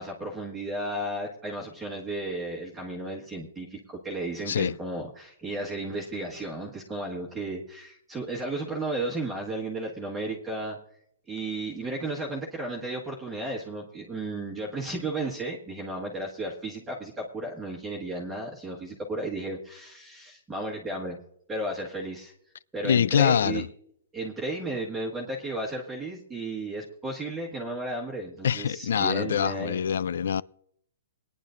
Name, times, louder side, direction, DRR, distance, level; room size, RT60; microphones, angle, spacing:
voice 1, 0.0-10.8 11.3-21.2 21.5-22.3 22.7-23.6 24.1-29.8, right 2 dB, 5° right, 1.5 m, -34 dB
voice 2, 22.8-23.7 28.4-30.4, left 8 dB, 65° left, 0.4 m, -24 dB
21.5 x 10.0 x 2.6 m
hypercardioid pair, 170°, 0 cm